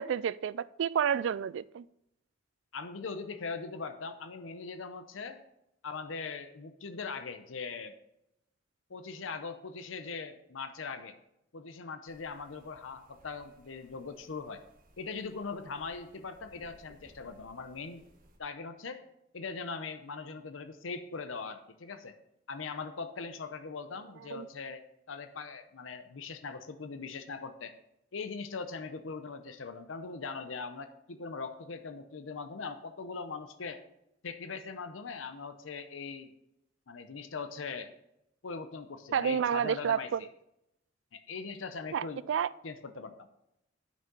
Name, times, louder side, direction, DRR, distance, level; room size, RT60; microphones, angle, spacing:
voice 1, 0.0-1.9 24.3-24.5 39.1-40.2 41.9-42.5, right 8 dB, 70° right, 0.3 m, -30 dB
voice 2, 2.7-5.4 5.8-7.9 8.9-11.1 11.5-14.6 15.0-18.1 18.4-19.0 19.3-22.1 22.5-24.8 25.1-27.7 28.1-33.8 34.2-36.3 36.9-37.9 38.4-40.3 41.1-42.2 42.6-43.3, left 4 dB, 85° left, 0.7 m, -40 dB
sound 1, 12.1-18.4, right 1 dB, 45° right, 1.6 m, -62 dB
9.2 x 6.4 x 5.3 m
head